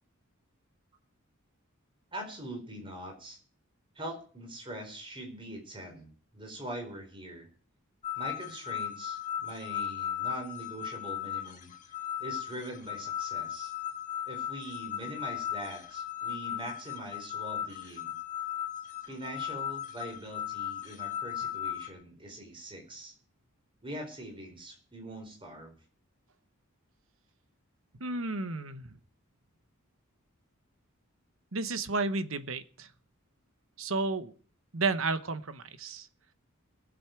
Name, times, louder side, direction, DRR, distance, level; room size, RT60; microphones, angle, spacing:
voice 1, 2.1-3.4 3.9-7.5 8.1-11.7 12.2-13.7 14.3-18.2 19.1-23.1 23.8-25.7, right 1 dB, 25° right, 3 dB, 4.5 m, -43 dB
sound 1, 8.0-21.9, left 10 dB, 35° left, 1.9 m, -37 dB
voice 2, 28.0-28.9 31.5-32.9 33.8-34.3 34.7-36.1, right 3 dB, 65° right, 12 dB, 1.1 m, -32 dB
21.5 x 7.9 x 4.6 m, 0.43 s
head